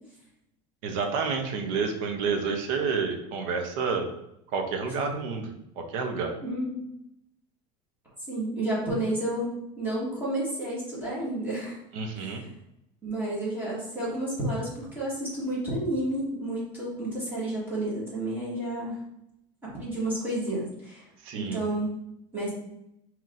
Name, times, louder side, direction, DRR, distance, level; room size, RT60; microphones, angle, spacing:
voice 1, 0.8-4.1 4.5-5.5 5.8-6.3 11.9-12.4 21.2-21.6, right 5 dB, 60° right, 4 dB, 0.7 m, -29 dB
voice 2, 6.4-6.9 8.3-11.8 12.2-12.4 13.0-19.0 19.6-21.0 21.3-22.0 22.3-22.5, right 1 dB, 10° right, -8 dB, 1.4 m, -31 dB
5.4 x 2.9 x 2.5 m, 0.81 s
supercardioid pair, 160°, 18 cm